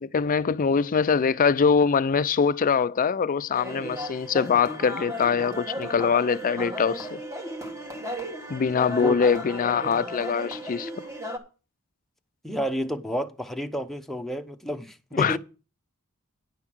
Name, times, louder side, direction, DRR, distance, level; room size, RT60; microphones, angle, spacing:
voice 1, 0.0-7.2 8.5-10.9 15.1-15.4, left 6 dB, 40° left, 0.4 m, -23 dB
sound 1, 3.5-11.4, equal, 15° right, 1.5 m, -35 dB
voice 2, 12.4-15.4, equal, ahead, 0.8 m, -30 dB
9.9 x 5.8 x 6.2 m
head